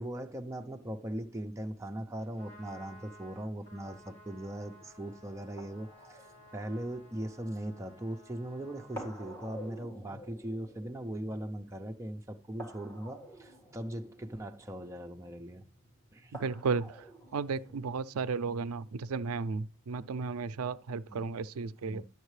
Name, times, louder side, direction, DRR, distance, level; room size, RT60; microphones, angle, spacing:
voice 1, 0.0-6.3 6.5-15.6 16.1-16.4 21.1-21.3 21.9-22.1, right 1 dB, 15° right, 0.6 m, -39 dB
Trumpet, 2.2-9.8, equal, 55° left, 2.4 m, -56 dB
sound 1, 4.0-19.8, right 1 dB, 10° left, 1.9 m, -52 dB
voice 2, 16.4-17.1 17.3-22.0, right 5 dB, 85° right, 0.4 m, -34 dB
11.0 x 7.3 x 3.2 m
head